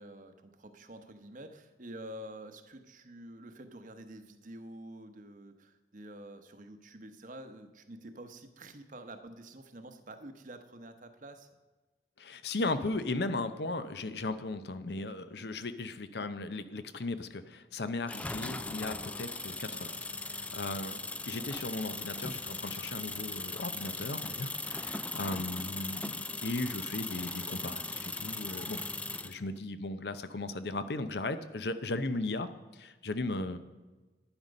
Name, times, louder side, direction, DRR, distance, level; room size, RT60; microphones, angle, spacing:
voice 1, 0.0-11.5 21.1-21.5 33.3-33.6, right 1 dB, 45° right, 8 dB, 1.0 m, -48 dB
voice 2, 12.2-20.0 20.3-28.8 29.2-33.6, left 2 dB, 70° left, 11 dB, 0.7 m, -36 dB
sound 1, 18.1-29.4, left 3 dB, 10° left, 0.3 m, -39 dB
11.5 x 9.8 x 5.2 m, 1.2 s
head